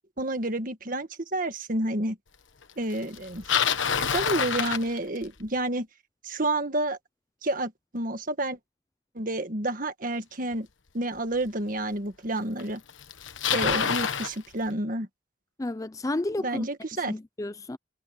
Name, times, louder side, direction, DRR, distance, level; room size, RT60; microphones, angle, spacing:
voice 1, 0.2-2.2 2.8-3.4 4.0-5.9 6.2-7.0 7.4-8.6 9.1-10.7 10.9-12.8 13.5-15.1 16.4-17.1, right 1 dB, 45° right, 1.7 m, -29 dB
Bicycle, 3.1-5.5 10.5-10.6 11.5-11.6 12.6-12.7 12.9-14.3, left 7 dB, 80° left, 1.2 m, -27 dB
voice 2, 15.6-16.7 16.9-17.8, left 2 dB, 15° left, 0.4 m, -32 dB
head